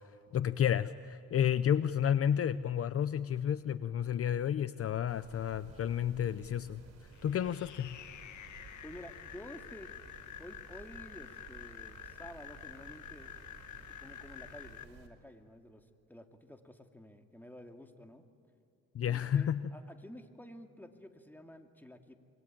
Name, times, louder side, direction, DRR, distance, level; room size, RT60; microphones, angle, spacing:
voice 1, 0.3-8.0 18.9-19.7, left 9 dB, 50° left, 14 dB, 0.7 m, -31 dB
sound 1, 5.1-15.1, right 5 dB, 55° right, 5.2 m, -55 dB
sound 2, 7.1-14.8, left 10 dB, 70° left, 1.3 m, -49 dB
voice 2, 8.8-9.9 10.4-13.4 14.0-18.2 19.1-22.1, left 1 dB, 5° left, 5 dB, 2.5 m, -51 dB
26.0 x 23.5 x 9.0 m, 2.5 s
cardioid pair, 90°, 30 cm